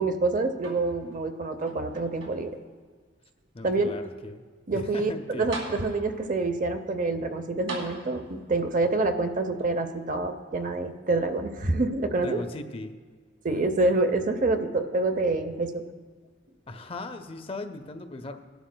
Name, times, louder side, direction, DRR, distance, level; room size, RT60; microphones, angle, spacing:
voice 1, 0.0-2.5 3.6-4.0 4.7-12.4 13.4-15.8, right 2 dB, 40° right, 8 dB, 0.7 m, -27 dB
sound 1, 0.6-1.3 1.7-2.7 3.4-3.5 5.0-5.1 5.5-6.3 7.7-8.5 9.6-9.7, right 2 dB, 80° right, 2.4 m, -40 dB
voice 2, 3.5-4.5 4.7-5.5 12.2-13.0 16.7-18.4, left 2 dB, 30° left, 8 dB, 0.5 m, -38 dB
19.5 x 11.5 x 2.2 m, 1.5 s
head